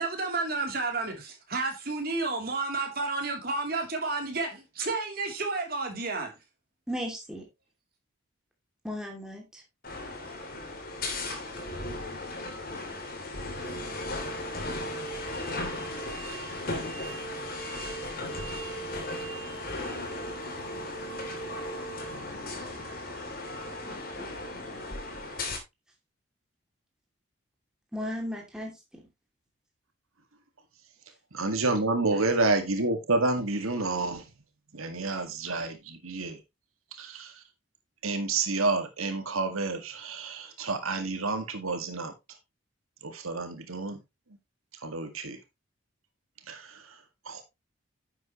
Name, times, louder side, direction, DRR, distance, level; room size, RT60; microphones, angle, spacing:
voice 1, 0.0-6.3, right 3 dB, 45° right, 3.1 m, -31 dB
voice 2, 6.9-7.5 8.8-9.6 23.9-24.8 27.9-28.7 32.1-32.2, equal, 5° right, 2.6 m, -37 dB
sound 1, 9.8-25.6, left 1 dB, 45° left, 3.0 m, -36 dB
voice 3, 31.3-34.2 34.7-36.4 37.0-37.3 38.0-42.1 43.0-44.0 44.8-45.4 46.5-46.8 47.3-47.4, right 3 dB, 90° right, 2.0 m, -29 dB
11.0 x 7.8 x 3.1 m
head